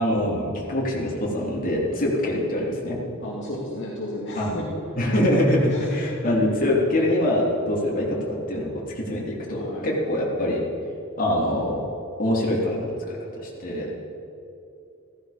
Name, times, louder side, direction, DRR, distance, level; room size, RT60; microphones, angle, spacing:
voice 1, 0.0-3.0 4.4-4.5 5.0-8.7 9.0-10.6 11.2-11.8 12.2-13.9, left 1 dB, 40° left, -4 dB, 3.6 m, -24 dB
voice 2, 3.2-4.7 5.7-6.0 9.5-9.9, left 1 dB, 55° left, -5 dB, 2.4 m, -33 dB
15.5 x 15.0 x 5.3 m, 2.8 s
head